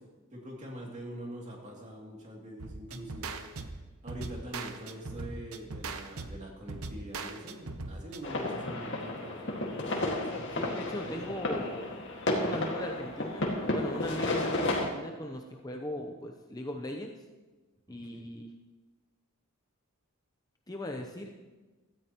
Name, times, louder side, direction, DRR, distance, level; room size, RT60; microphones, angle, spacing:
voice 1, 0.3-3.4 4.0-11.3 17.9-18.2, right 1 dB, 35° right, -2 dB, 2.7 m, -44 dB
sound 1, 2.6-8.2, right 3 dB, 75° right, 0.9 m, -40 dB
sound 2, 8.2-14.9, left 2 dB, 55° left, 1.9 m, -32 dB
voice 2, 10.6-17.1 17.9-18.5 20.7-21.3, left 1 dB, 15° left, 3 dB, 0.7 m, -39 dB
17.0 x 13.5 x 3.0 m, 1.2 s
head